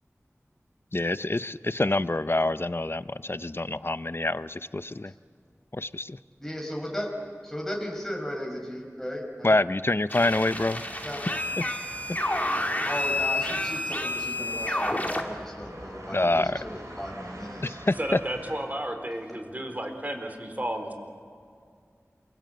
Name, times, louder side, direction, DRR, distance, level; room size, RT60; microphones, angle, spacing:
voice 1, 0.9-5.1 5.7-6.2 9.4-10.8 11.6-11.7 16.1-16.6 17.6-18.2, left 2 dB, 45° left, 14 dB, 0.7 m, -26 dB
voice 2, 6.4-7.1 7.4-9.5 11.0-11.2 12.9-17.8, equal, 5° left, 0 dB, 5.1 m, -36 dB
sound 1, 10.1-15.2, left 1 dB, 30° left, 2.9 m, -29 dB
sound 2, 10.2-18.6, right 1 dB, 85° right, 6.4 m, -44 dB
voice 3, 18.0-20.9, right 1 dB, 30° right, 5 dB, 4.0 m, -32 dB
27.5 x 24.0 x 8.0 m, 2.2 s
wide cardioid pair, 40°, 5 cm